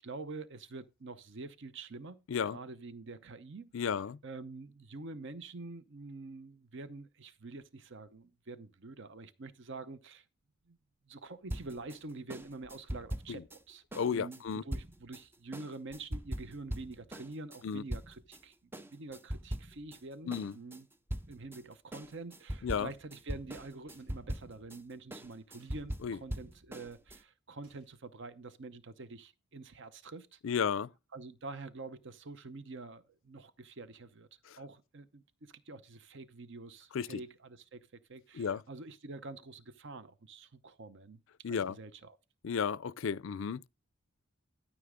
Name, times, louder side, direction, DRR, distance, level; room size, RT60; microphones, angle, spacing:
voice 1, 0.0-2.2 2.5-3.7 4.2-10.2 10.7-10.8 11.1-13.8 14.1-18.5 18.9-20.9 21.3-30.4 31.1-34.3 34.6-41.2 41.5-42.2, right 3 dB, 55° right, 0.8 m, -47 dB
voice 2, 3.7-4.2 13.3-13.4 13.9-14.6 17.6-17.8 20.3-20.5 22.6-22.9 26.0-26.2 30.4-30.9 34.5-34.6 36.9-37.2 38.3-38.6 41.4-41.8 42.4-43.7, left 6 dB, 60° left, 0.4 m, -33 dB
sound 1, 11.5-18.4 18.7-20.0 20.3-27.2, equal, 10° right, 0.4 m, -41 dB
sound 2, 23.9-24.4 25.6-25.9 27.6-28.1, right 1 dB, 80° right, 4.0 m, -69 dB
13.0 x 6.1 x 3.7 m
head